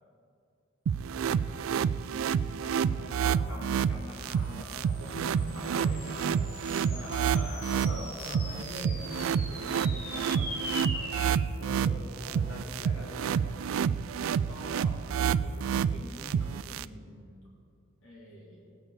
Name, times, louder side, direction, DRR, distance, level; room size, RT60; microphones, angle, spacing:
sound 1, 0.9-16.8, right 7 dB, 80° right, 0.3 m, -29 dB
voice 1, 1.0-1.8 7.0-7.9 11.9-13.5, equal, 65° left, -5 dB, 2.2 m, -45 dB
voice 2, 2.6-6.4 6.8-7.1 7.5-11.3 14.3-17.3 18.0-18.8, equal, 85° left, -5 dB, 2.5 m, -44 dB
sound 2, 4.1-14.8, left 1 dB, 30° left, 3.1 m, -43 dB
17.5 x 8.6 x 4.9 m, 2.5 s
head